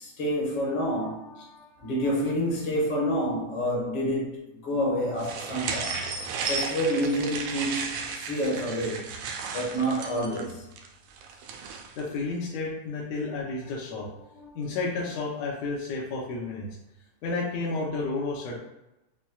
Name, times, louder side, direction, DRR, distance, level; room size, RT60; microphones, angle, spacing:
voice 1, 0.0-6.0 6.5-9.1 9.5-10.6 14.3-14.8, equal, 55° left, 1.1 m, -28 dB
sound 1, 5.2-12.0, right 5 dB, 85° right, 1.4 m, -34 dB
voice 2, 12.0-14.1 14.5-16.7 17.2-18.6, left 3 dB, 75° left, 1.6 m, -31 dB
5.9 x 2.2 x 2.2 m
omnidirectional pair, 3.4 m